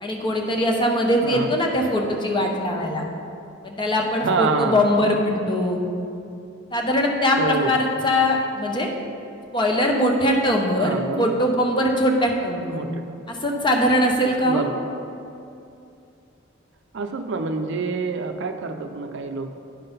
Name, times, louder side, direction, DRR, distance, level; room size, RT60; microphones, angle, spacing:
voice 1, 0.0-3.1 3.6-5.8 6.7-8.9 9.5-12.8 13.3-14.6, left 1 dB, 25° left, 1 dB, 0.8 m, -21 dB
voice 2, 1.2-1.5 4.2-4.9 7.4-7.8 10.8-11.4 12.7-13.2 14.4-14.7 16.9-19.5, right 4 dB, 65° right, 7 dB, 0.5 m, -26 dB
9.9 x 3.8 x 5.4 m, 2.6 s
head